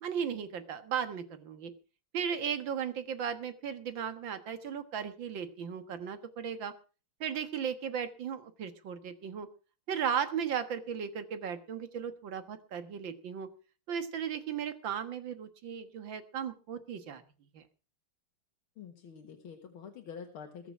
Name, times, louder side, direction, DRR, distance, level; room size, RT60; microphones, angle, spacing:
voice 1, 0.0-1.7 2.1-6.7 7.2-9.5 9.9-13.5 13.9-17.2 17.5-17.6, right 7 dB, 65° right, 10 dB, 2.1 m, -36 dB
voice 2, 18.8-20.7, left 7 dB, 80° left, 4 dB, 2.4 m, -47 dB
21.0 x 7.0 x 5.9 m, 0.36 s
omnidirectional pair, 2.3 m